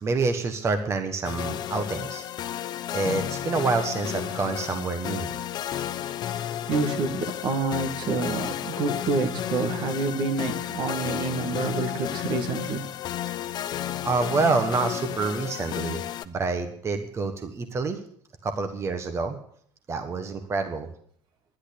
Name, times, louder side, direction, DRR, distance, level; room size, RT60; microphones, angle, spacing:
voice 1, 0.0-2.2 2.9-5.3 14.0-18.0 18.4-19.4 19.9-20.9, right 4 dB, 30° right, 7 dB, 1.4 m, -27 dB
sound 1, 1.2-16.2, left 11 dB, 50° left, 0.9 m, -32 dB
voice 2, 6.7-12.8, right 3 dB, 60° right, 7 dB, 1.9 m, -28 dB
11.5 x 10.5 x 8.4 m, 0.62 s
cardioid pair, 125°, 9 cm